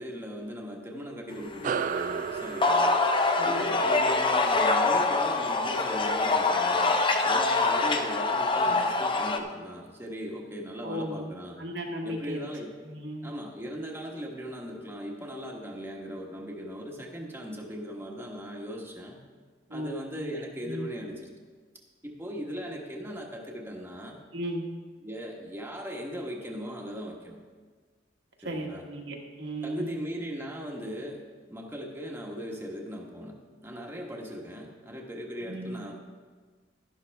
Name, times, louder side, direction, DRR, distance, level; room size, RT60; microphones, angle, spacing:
voice 1, 0.0-3.0 3.4-11.6 12.0-12.7 13.2-19.2 19.7-21.3 22.0-24.2 25.0-27.4 28.4-28.9 29.6-31.2 31.5-35.9, equal, 15° right, -1 dB, 1.2 m, -38 dB
sound 1, 1.6-6.5, right 6 dB, 45° right, 0.3 m, -36 dB
sound 2, 1.7-9.4, left 3 dB, 25° left, 0.6 m, -25 dB
voice 2, 10.8-11.3 11.6-12.4 12.9-13.3 19.7-20.3 20.6-20.9 24.3-24.7 28.4-29.9 35.4-35.9, equal, 75° right, 0 dB, 1.6 m, -35 dB
11.5 x 11.5 x 3.4 m, 1.5 s
head